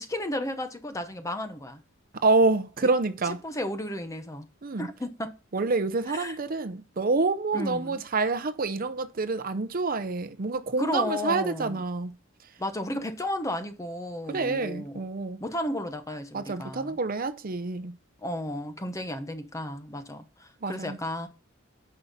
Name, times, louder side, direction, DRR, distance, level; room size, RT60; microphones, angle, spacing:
voice 1, 0.0-1.8 3.4-4.5 4.8-5.4 6.1-6.4 7.5-8.0 10.8-11.8 12.6-15.0 15.4-17.0 18.2-21.3, left 1 dB, 15° left, 0.9 m, -33 dB
voice 2, 2.2-3.4 4.6-4.9 5.5-12.1 12.9-13.0 14.3-15.4 16.3-17.9 20.6-21.0, right 3 dB, 45° right, 0.7 m, -27 dB
9.5 x 5.6 x 4.1 m
head